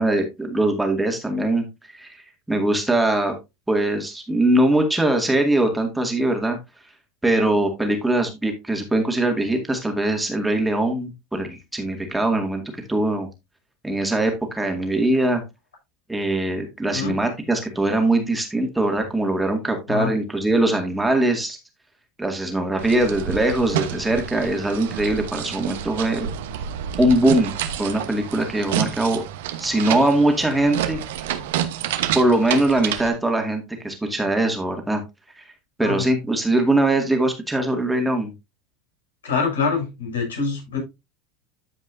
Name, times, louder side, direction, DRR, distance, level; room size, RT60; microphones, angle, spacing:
voice 1, 0.0-1.6 1.9-2.2 2.5-3.3 3.7-6.6 7.2-13.3 13.8-15.4 16.1-21.6 22.2-26.3 27.0-27.5 27.8-29.2 29.6-31.0 32.1-35.0 35.4-35.5 35.8-38.3, right 1 dB, 10° right, 3 dB, 2.1 m, -21 dB
sound 1, 22.8-33.1, right 10 dB, 70° right, 1.0 m, -29 dB
voice 2, 39.2-40.8, left 5 dB, 80° left, 1 dB, 5.9 m, -25 dB
13.5 x 5.3 x 2.6 m, 0.23 s
hypercardioid pair, 80°, 0 cm